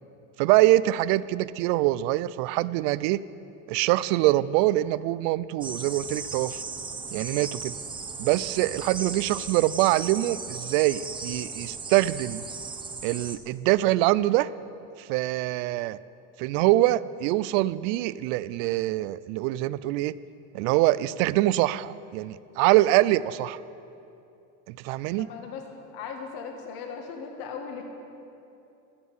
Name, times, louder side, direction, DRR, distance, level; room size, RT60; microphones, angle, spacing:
voice 1, 0.4-3.2 3.7-6.6 7.1-7.7 8.2-12.4 13.0-14.5 15.0-16.0 16.4-20.2 20.5-23.6 24.7-25.3, right 16 dB, 70° right, 18 dB, 0.6 m, -24 dB
sound 1, 5.6-13.4, right 4 dB, 10° right, 0.8 m, -36 dB
voice 2, 25.2-25.6 25.9-27.8, left 6 dB, 60° left, 3 dB, 1.9 m, -38 dB
15.5 x 13.0 x 5.6 m, 2.7 s
cardioid pair, 140°, 41 cm